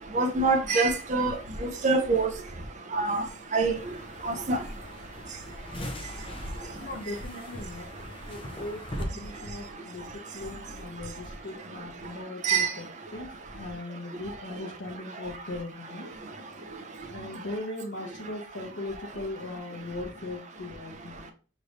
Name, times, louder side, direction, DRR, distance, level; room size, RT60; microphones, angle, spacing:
voice 1, 0.1-1.3 1.8-2.3 2.9-3.2 3.5-3.7 4.2-4.6 12.4-12.7, right 3 dB, 40° right, 0.6 m, -24 dB
sound 1, 3.8-9.0, left 1 dB, 30° left, 0.7 m, -41 dB
voice 2, 6.8-16.1 17.1-21.3, left 2 dB, 70° left, 1.1 m, -39 dB
5.3 x 3.3 x 2.6 m
head